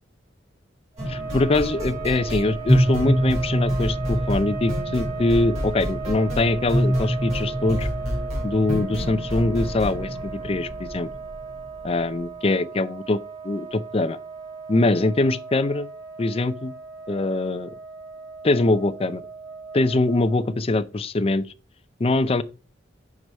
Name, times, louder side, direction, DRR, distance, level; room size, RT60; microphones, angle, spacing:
sound 1, 0.9-20.6, right 5 dB, 20° right, 1.0 m, -37 dB
sound 2, 1.0-11.9, equal, 35° right, 3.7 m, -26 dB
voice 1, 1.1-7.9 8.4-11.1 11.8-13.2 13.4-14.2 14.7-15.9 16.2-16.7 17.1-17.7 18.4-19.2 19.7-21.5 22.0-22.4, left 2 dB, 30° left, 0.5 m, -23 dB
6.1 x 4.8 x 5.3 m
head